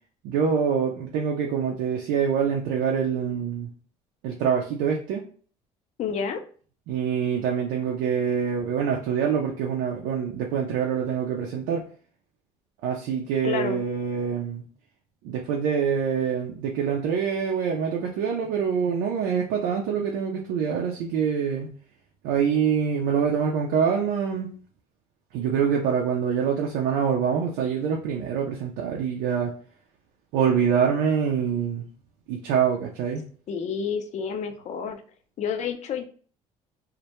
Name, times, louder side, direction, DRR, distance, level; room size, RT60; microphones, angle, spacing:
voice 1, 0.2-3.7 4.2-5.3 6.9-11.8 12.8-14.6 15.2-21.7 22.2-24.5 25.3-29.5 30.3-31.8 32.3-33.2, right 7 dB, 80° right, 0 dB, 0.5 m, -25 dB
voice 2, 6.0-6.4 13.4-13.8 33.5-35.0 35.4-36.1, left 6 dB, 55° left, 7 dB, 0.5 m, -29 dB
2.1 x 2.1 x 2.9 m, 0.42 s
supercardioid pair, 70°, 15 cm